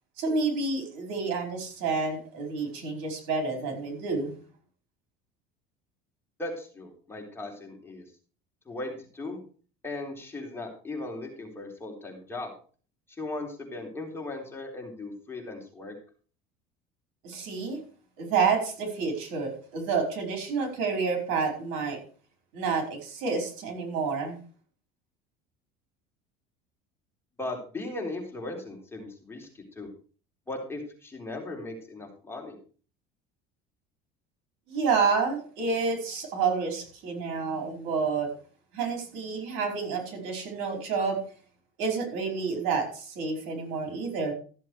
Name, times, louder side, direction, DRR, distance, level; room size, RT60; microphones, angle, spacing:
voice 1, 0.2-4.3 17.2-17.8 18.2-22.0 22.5-24.4 34.7-38.3 38.7-41.2 41.8-44.3, right 5 dB, 70° right, 4 dB, 4.9 m, -29 dB
voice 2, 6.4-8.0 8.7-9.4 9.8-12.5 13.2-15.9 27.4-29.9 30.5-32.6, left 2 dB, 10° left, 0 dB, 3.9 m, -37 dB
14.0 x 7.6 x 4.8 m, 0.40 s
supercardioid pair, 120°, 21 cm